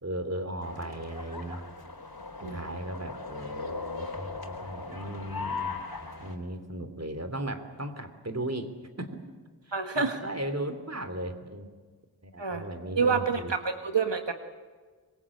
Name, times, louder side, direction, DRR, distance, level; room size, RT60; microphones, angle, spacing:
voice 1, 0.0-1.7 2.4-5.8 6.2-8.7 9.0-9.4 9.7-11.7 12.2-13.5, right 1 dB, 35° right, 9 dB, 3.1 m, -36 dB
sound 1, 0.6-6.4, left 4 dB, 55° left, 4.2 m, -38 dB
voice 2, 2.4-2.8 9.7-10.2 12.4-12.6 13.0-14.3, right 5 dB, 75° right, 6 dB, 1.7 m, -28 dB
25.5 x 22.5 x 8.6 m, 1.5 s
wide cardioid pair, 50°, 43 cm